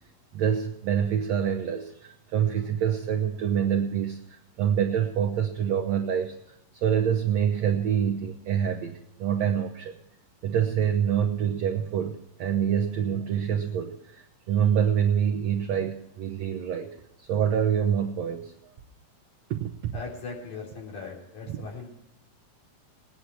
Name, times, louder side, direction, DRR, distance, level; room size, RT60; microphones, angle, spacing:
voice 1, 0.3-6.4 6.8-9.9 10.4-18.5 19.5-19.9 21.5-21.6, right 8 dB, 75° right, 2 dB, 1.6 m, -26 dB
voice 2, 19.9-21.9, left 4 dB, 50° left, -1 dB, 4.9 m, -39 dB
19.5 x 10.0 x 4.6 m, 0.81 s
omnidirectional pair, 4.4 m